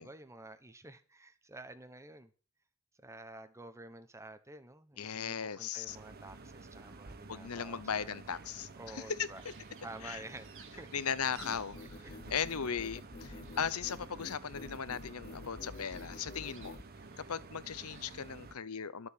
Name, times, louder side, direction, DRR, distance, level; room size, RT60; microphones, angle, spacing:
voice 1, 0.0-2.3 3.0-8.2 8.8-9.4 9.8-10.9 12.0-12.1, right 2 dB, 15° right, 1.2 m, -50 dB
voice 2, 5.0-6.0 7.3-9.3 10.0-10.2 10.9-11.8 12.3-16.8 17.2-19.1, left 7 dB, 85° left, 0.9 m, -37 dB
sound 1, 5.9-18.6, right 3 dB, 45° right, 1.1 m, -52 dB
sound 2, 9.3-18.4, right 7 dB, 60° right, 1.7 m, -61 dB
sound 3, 11.4-16.8, left 3 dB, 40° left, 0.6 m, -49 dB
12.5 x 7.2 x 8.3 m
head